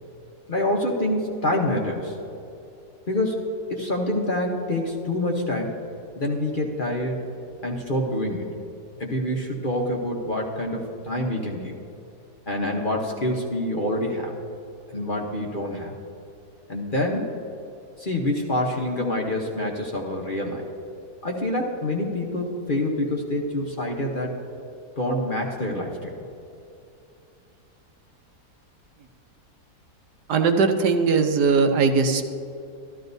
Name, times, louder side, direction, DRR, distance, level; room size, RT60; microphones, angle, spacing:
voice 1, 0.5-2.2 3.1-5.8 6.2-7.2 7.6-8.5 9.0-11.7 12.5-14.3 14.9-15.9 16.7-17.4 18.0-20.6 21.2-24.4 25.0-26.3, left 1 dB, 40° left, 0 dB, 0.9 m, -26 dB
voice 2, 30.3-32.3, right 4 dB, 80° right, 5 dB, 1.4 m, -20 dB
13.5 x 13.0 x 2.6 m, 2.7 s
omnidirectional pair, 1.8 m